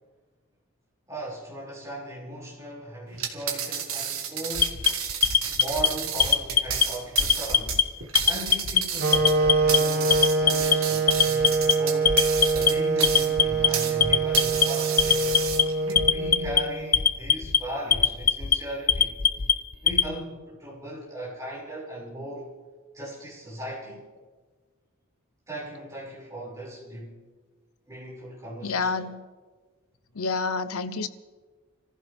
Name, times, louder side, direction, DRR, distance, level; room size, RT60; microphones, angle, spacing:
voice 1, 1.1-4.9 5.5-7.8 8.2-12.2 12.5-15.3 15.8-19.2 19.8-22.5 22.9-24.0 25.5-27.2 27.9-28.9, right 1 dB, 15° right, 6.2 m, -38 dB
sound 1, 3.1-14.0 14.3-15.9, right 8 dB, 75° right, 1.8 m, -32 dB
Alarm, 4.6-5.9 6.2-6.8 7.2-7.8 8.2-8.8 9.1-9.8 10.1-10.7 11.1-11.7 12.1-12.7 13.0-13.7 14.0-14.7 15.0-15.6 16.0-16.6 16.9-17.6 17.9-18.6 18.9-20.1, left 8 dB, 40° left, 0.6 m, -20 dB
sound 2, 9.0-17.0, right 3 dB, 45° right, 1.2 m, -25 dB
voice 2, 28.6-29.2 30.1-31.1, left 4 dB, 85° left, 0.9 m, -28 dB
26.0 x 15.0 x 3.6 m
head